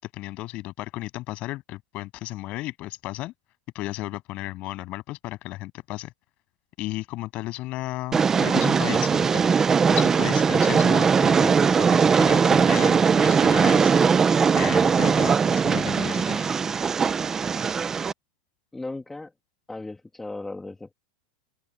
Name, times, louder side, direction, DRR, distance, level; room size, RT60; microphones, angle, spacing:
voice 1, 0.0-3.3 3.7-6.1 6.8-9.5 9.9-11.9 12.1-13.9 14.5-16.5, left 18 dB, 30° left, 7.6 m, -34 dB
Train, 8.1-18.1, right 6 dB, 10° right, 0.5 m, -20 dB
voice 2, 18.7-19.3 19.7-20.9, left 2 dB, 5° left, 1.6 m, -36 dB
open air
supercardioid pair, 170°, 4 cm